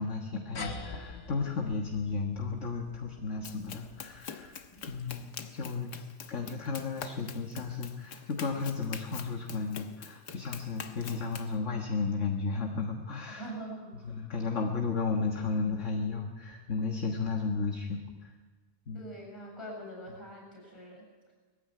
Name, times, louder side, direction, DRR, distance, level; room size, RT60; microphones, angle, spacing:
voice 1, 0.0-4.6 4.9-13.5 14.0-18.3 18.9-19.0, left 4 dB, 50° left, 3 dB, 1.8 m, -34 dB
sound 1, 0.6-5.4, left 3 dB, 65° left, 2.2 m, -45 dB
Run, 3.4-11.5, left 7 dB, 90° left, 1.8 m, -45 dB
voice 2, 13.3-14.3 18.9-21.3, right 1 dB, 15° left, -1 dB, 8.0 m, -44 dB
20.5 x 15.0 x 9.4 m, 1.4 s
omnidirectional pair, 1.7 m